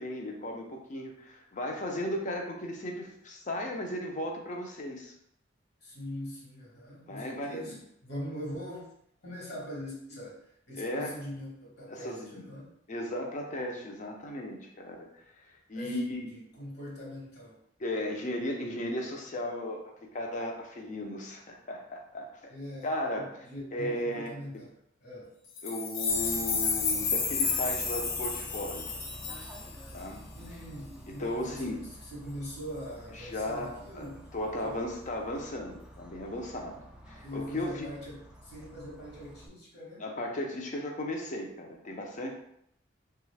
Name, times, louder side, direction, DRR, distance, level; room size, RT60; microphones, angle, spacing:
voice 1, 0.0-5.1 7.1-7.7 10.8-11.1 11.9-12.4 12.9-15.2 15.7-16.2 17.8-19.8 20.1-22.5 22.8-23.3 23.7-24.3 25.6-29.1 29.9-30.2 31.1-31.8 33.2-34.1 34.3-36.8 37.1-37.9 40.0-42.3, left 1 dB, 40° left, 1 dB, 0.6 m, -35 dB
voice 2, 5.8-8.9 9.2-12.8 15.7-16.0 16.3-17.6 22.5-24.7 25.0-25.3 30.3-34.3 34.6-34.8 37.2-40.1, equal, 60° left, -4 dB, 1.3 m, -42 dB
sound 1, 25.6-30.0, left 5 dB, 85° left, 0.6 m, -31 dB
Bird / Train, 26.1-39.5, equal, 5° right, 0.4 m, -48 dB
3.1 x 2.4 x 3.2 m, 0.72 s
head